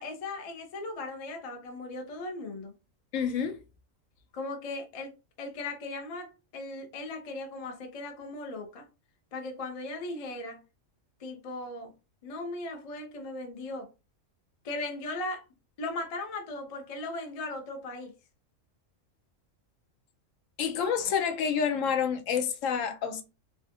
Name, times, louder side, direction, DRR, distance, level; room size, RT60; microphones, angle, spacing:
voice 1, 0.0-2.7 4.3-5.1 5.4-8.9 9.3-10.6 11.2-11.9 12.2-13.9 14.6-15.4 15.8-18.1, left 2 dB, 45° left, 0.4 m, -38 dB
voice 2, 3.1-3.6 20.6-23.2, left 7 dB, 75° left, 0.9 m, -28 dB
3.3 x 2.4 x 2.6 m
omnidirectional pair, 1.3 m